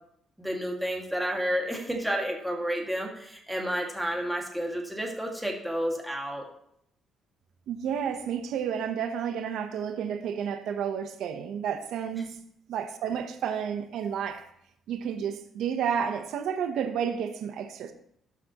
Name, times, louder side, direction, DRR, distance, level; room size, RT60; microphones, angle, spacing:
voice 1, 0.4-6.5 12.1-12.2, equal, ahead, 2.0 m, -31 dB
voice 2, 7.7-12.4 12.7-14.5 14.9-17.9, right 8 dB, 80° right, 0.9 m, -31 dB
12.0 x 6.0 x 3.0 m
cardioid pair, 90°, 0 cm